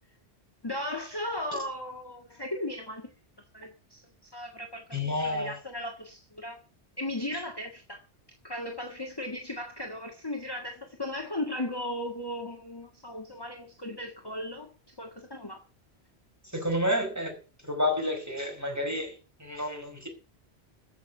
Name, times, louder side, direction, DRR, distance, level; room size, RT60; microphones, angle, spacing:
voice 1, 0.6-3.1 3.5-6.6 7.0-8.0 8.4-15.6, left 1 dB, 20° left, 1.7 m, -36 dB
voice 2, 4.9-5.5 7.3-7.4 16.5-17.4 17.6-20.1, left 1 dB, 15° right, 5.3 m, -30 dB
15.0 x 6.4 x 8.1 m
omnidirectional pair, 1.1 m